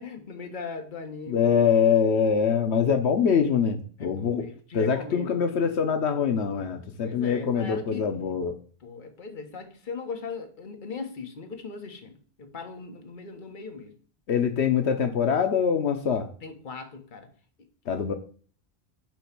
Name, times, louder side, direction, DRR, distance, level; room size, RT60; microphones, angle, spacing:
voice 1, 0.0-1.5 4.0-5.7 7.0-8.1 8.8-13.9 16.4-17.3, left 4 dB, 50° left, 5 dB, 1.3 m, -39 dB
voice 2, 1.3-4.4 4.7-8.6 14.3-16.3 17.9-18.1, left 7 dB, 80° left, 7 dB, 1.1 m, -24 dB
8.9 x 3.1 x 5.9 m, 0.43 s
omnidirectional pair, 1.1 m